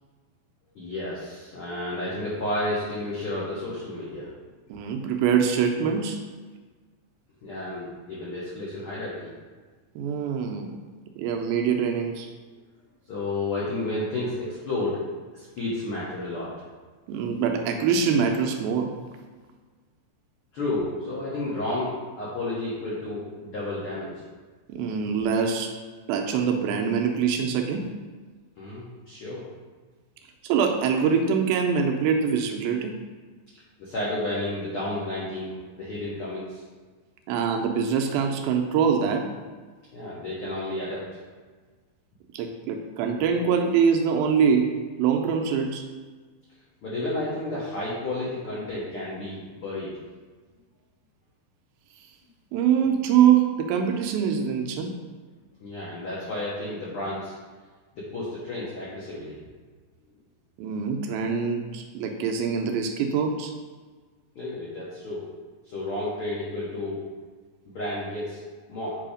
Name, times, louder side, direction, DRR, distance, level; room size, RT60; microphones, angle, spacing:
voice 1, 0.7-4.3 7.4-9.3 13.1-15.0 15.3-16.5 20.5-24.1 28.6-29.4 33.8-36.6 39.9-41.0 46.8-49.9 55.6-57.3 58.1-59.4 64.3-65.3 65.7-67.0 67.7-68.4 68.7-69.0, left 2 dB, 85° left, -7 dB, 1.2 m, -31 dB
voice 2, 4.7-6.2 10.0-10.7 11.2-12.3 17.1-18.9 24.7-25.7 26.1-27.9 30.4-33.0 37.3-39.3 42.3-45.8 52.5-54.9 60.6-63.5, right 7 dB, 90° right, 3 dB, 2.4 m, -24 dB
7.6 x 2.8 x 5.0 m, 1.4 s
omnidirectional pair, 4.1 m